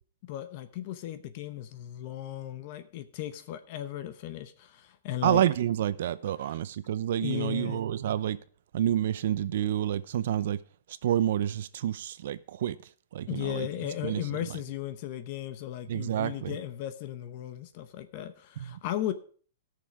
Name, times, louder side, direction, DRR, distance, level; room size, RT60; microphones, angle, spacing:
voice 1, 0.3-5.5 6.4-6.6 7.2-7.8 13.3-19.1, left 12 dB, 40° left, 0.8 m, -36 dB
voice 2, 5.2-8.4 8.7-10.6 11.0-12.8 13.1-13.7 14.0-14.3 15.9-16.6 18.6-18.8, right 11 dB, 60° right, 0.7 m, -28 dB
14.5 x 6.7 x 5.0 m
hypercardioid pair, 165°, 0 cm